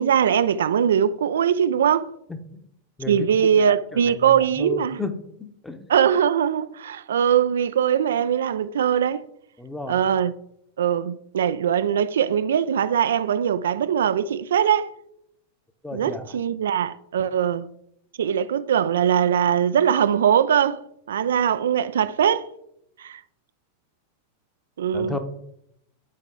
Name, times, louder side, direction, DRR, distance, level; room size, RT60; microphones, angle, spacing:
voice 1, 0.0-2.1 3.1-5.0 5.9-9.2 9.9-10.3 10.8-14.9 15.9-17.7 18.2-20.8 21.1-22.5 23.0-23.2 24.8-25.2, right 8 dB, 65° right, 0.3 m, -21 dB
voice 2, 2.3-2.6 3.0-3.3 4.2-5.1 5.6-5.9 9.6-10.0 15.8-16.4 24.9-25.2, left 2 dB, 5° left, 0.9 m, -33 dB
11.0 x 4.6 x 3.8 m
figure-of-eight pair, 90°, 0 cm